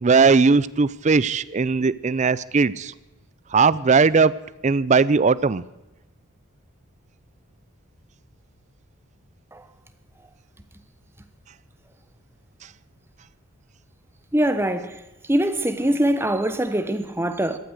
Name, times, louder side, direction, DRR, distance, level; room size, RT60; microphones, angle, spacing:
voice 1, 0.0-2.9 3.5-4.3 4.6-5.6, right 4 dB, 35° right, 0.4 m, -18 dB
voice 2, 14.3-15.0 15.3-17.6, right 1 dB, 10° right, 1.0 m, -23 dB
17.5 x 12.5 x 6.5 m
head